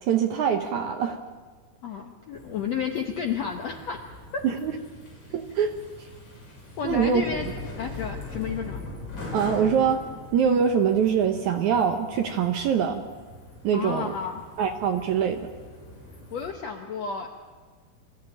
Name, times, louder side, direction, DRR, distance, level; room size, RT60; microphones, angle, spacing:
voice 1, 0.0-1.2 4.4-4.7 5.3-5.7 6.8-7.2 9.3-10.0 10.3-13.0 13.6-14.2 14.6-15.5, right 7 dB, 75° right, 5 dB, 1.7 m, -23 dB
voice 2, 1.8-4.0 4.3-4.4 6.8-7.5 7.8-8.8 13.7-14.4 16.3-17.3, left 6 dB, 85° left, 3 dB, 1.5 m, -31 dB
sound 1, 2.3-16.5, left 2 dB, 35° left, 5.6 m, -41 dB
25.0 x 14.0 x 9.0 m, 1.4 s
omnidirectional pair, 4.7 m